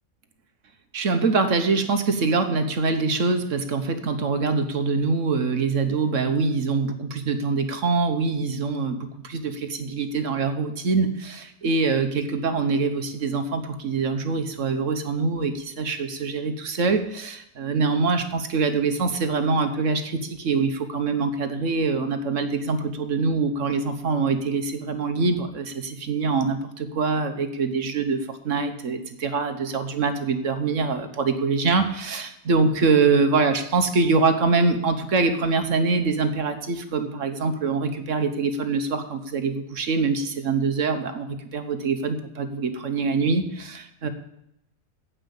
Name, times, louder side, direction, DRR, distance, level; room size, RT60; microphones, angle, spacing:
voice 1, 0.9-44.1, right 4 dB, 55° right, 8 dB, 1.4 m, -24 dB
9.4 x 8.7 x 7.1 m, 0.79 s
omnidirectional pair, 1.7 m